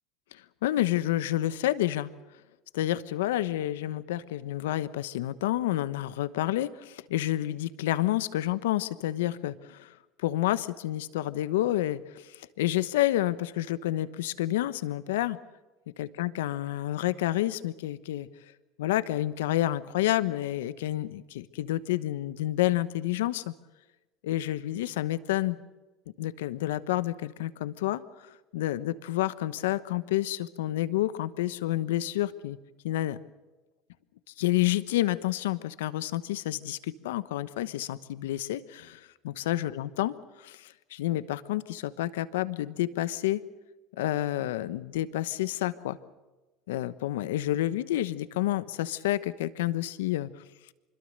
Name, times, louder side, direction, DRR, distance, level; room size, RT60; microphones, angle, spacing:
voice 1, 0.3-2.1 2.7-15.4 16.0-18.3 18.8-23.5 24.2-25.6 26.2-28.0 28.5-32.6 32.8-33.2 34.4-43.4 44.0-46.0 46.7-50.3, left 14 dB, 85° left, 14 dB, 1.1 m, -29 dB
25.5 x 22.0 x 6.7 m, 1.1 s
supercardioid pair, 95°, 0 cm